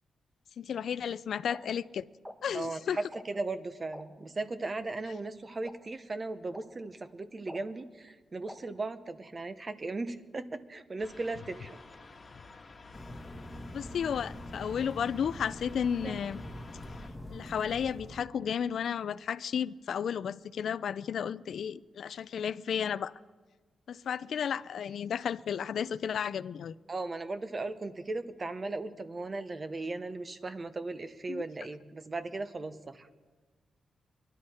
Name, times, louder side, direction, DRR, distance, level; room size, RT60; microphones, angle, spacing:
voice 1, 0.6-2.0 2.4-3.0 13.7-16.4 17.3-23.1 23.9-26.7 31.3-31.4, left 8 dB, 70° left, 0.3 m, -33 dB
sound 1, 1.5-1.6 2.2-2.3 3.1-3.2 3.9-4.0 4.8-4.9 5.6-5.7 6.5-6.6 7.5-7.6 8.5-8.6, equal, 10° right, 1.1 m, -43 dB
voice 2, 2.5-11.7 16.0-16.2 26.9-33.1, right 3 dB, 30° right, 0.7 m, -37 dB
sound 2, 11.0-17.1, left 3 dB, 30° left, 1.5 m, -52 dB
sound 3, 12.9-18.2, left 1 dB, 10° left, 1.4 m, -44 dB
22.5 x 11.5 x 4.2 m
wide cardioid pair, 130°, 0 cm